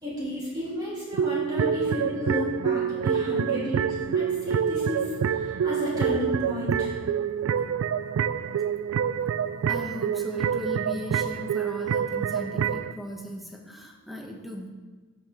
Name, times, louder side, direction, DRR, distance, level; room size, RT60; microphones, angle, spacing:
voice 1, 0.0-7.0, left 1 dB, 20° right, -9 dB, 2.9 m, -32 dB
sound 1, 1.1-12.9, right 8 dB, 75° right, 0.3 m, -27 dB
voice 2, 9.7-14.7, left 1 dB, ahead, 0 dB, 1.1 m, -37 dB
13.5 x 5.9 x 3.4 m, 1.3 s
head